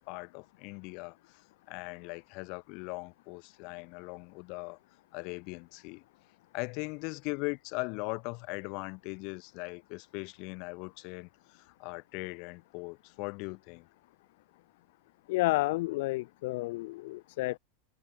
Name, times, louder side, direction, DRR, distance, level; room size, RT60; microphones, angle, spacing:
voice 1, 0.0-1.4 1.7-4.8 5.1-6.0 6.5-13.9, left 31 dB, 45° left, 6.0 m, -40 dB
voice 2, 15.3-17.6, left 20 dB, 60° left, 1.6 m, -30 dB
supercardioid pair, 165°, 0 cm